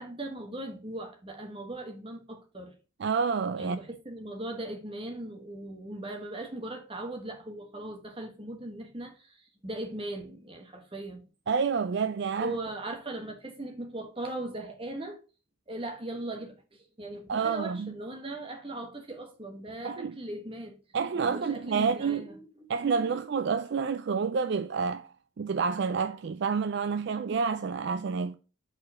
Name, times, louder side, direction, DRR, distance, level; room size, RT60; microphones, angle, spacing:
voice 1, 0.0-2.7 3.6-11.2 12.4-15.2 15.7-20.8 21.1-23.3, right 1 dB, 25° right, 1.3 m, -39 dB
voice 2, 3.0-3.8 11.5-12.6 17.3-17.9 19.8-20.1 20.9-22.2 22.7-28.4, right 5 dB, 55° right, 0.4 m, -29 dB
5.0 x 4.3 x 6.0 m
head